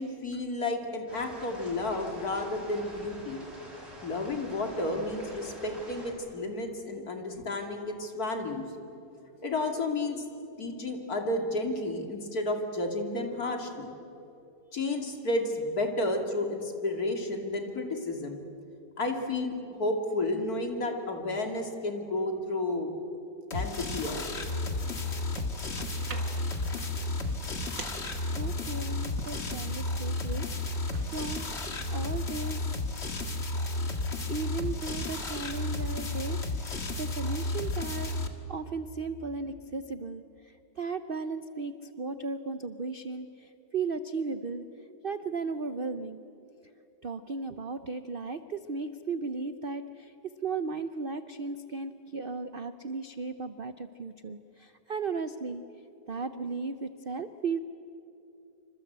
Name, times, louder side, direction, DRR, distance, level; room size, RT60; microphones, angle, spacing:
voice 1, 0.0-3.4 4.0-8.7 9.4-10.2 10.6-13.9 14.7-18.4 19.0-22.9 23.5-24.5, left 2 dB, 55° left, 3 dB, 3.0 m, -32 dB
sound 1, 1.1-6.1, equal, 35° right, 7.5 m, -47 dB
sound 2, 23.5-38.3, left 2 dB, 40° left, 1.9 m, -32 dB
sound 3, 24.8-32.0, right 4 dB, 85° right, 2.8 m, -47 dB
voice 2, 28.4-31.5 31.9-32.6 33.8-38.1 38.5-44.7 45.0-46.2 47.0-50.1 50.4-55.6 56.1-57.6, right 4 dB, 55° right, 10 dB, 0.6 m, -36 dB
27.0 x 25.5 x 8.1 m, 2.8 s
omnidirectional pair, 1.9 m